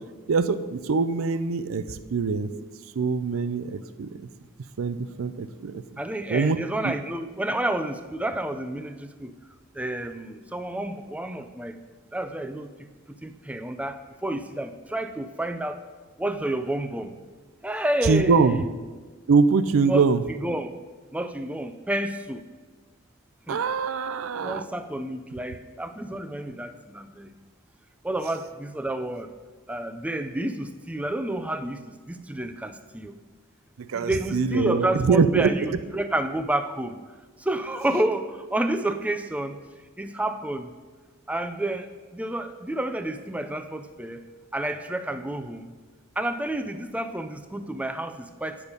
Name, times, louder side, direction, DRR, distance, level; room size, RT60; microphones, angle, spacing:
voice 1, 0.3-2.5 3.0-4.3 4.8-5.8 6.3-6.6 6.8-6.9 18.0-18.6 19.3-20.2 23.5-24.6 33.8-35.7, right 5 dB, 80° right, 13 dB, 0.5 m, -23 dB
voice 2, 6.0-9.3 9.8-11.8 12.1-15.8 16.2-17.1 17.6-18.7 19.8-20.0 20.4-20.7 21.1-22.4 23.5-23.6 24.4-27.3 28.0-29.3 29.7-33.2 33.9-36.9 37.4-39.6 40.0-40.7 41.3-41.9 42.1-44.2 44.5-45.7 46.2-48.6, right 1 dB, 5° right, 9 dB, 0.4 m, -30 dB
9.7 x 7.0 x 5.2 m, 1.4 s
head